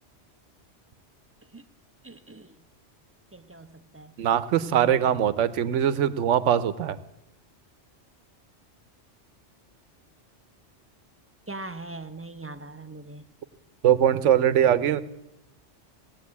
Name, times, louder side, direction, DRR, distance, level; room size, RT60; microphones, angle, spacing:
voice 1, 2.0-2.6 3.3-4.1 4.6-5.1 11.5-13.3, right 2 dB, 15° right, 8 dB, 0.5 m, -41 dB
voice 2, 4.2-7.0 13.8-15.1, right 10 dB, 90° right, 14 dB, 1.0 m, -22 dB
17.0 x 8.9 x 8.4 m, 0.92 s
omnidirectional pair, 1.2 m